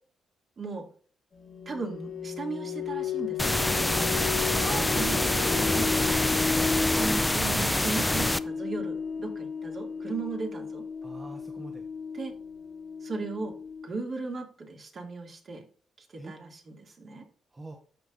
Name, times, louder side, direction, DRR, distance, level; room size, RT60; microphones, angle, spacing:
voice 1, 0.6-0.9 1.7-3.8 4.9-6.2 6.9-10.8 12.1-12.3 13.0-13.5 13.8-15.6 16.1-17.2, right 3 dB, 50° right, 1 dB, 2.5 m, -37 dB
sound 1, 1.3-13.9, left 6 dB, 50° left, 1.3 m, -34 dB
sound 2, 3.4-8.4, left 1 dB, 10° left, 0.5 m, -26 dB
voice 2, 4.4-5.3 11.0-11.8 16.2-16.3 17.5-17.8, right 2 dB, 25° right, 2 dB, 1.1 m, -40 dB
13.5 x 4.9 x 2.6 m, 0.43 s
cardioid pair, 90°, 0 cm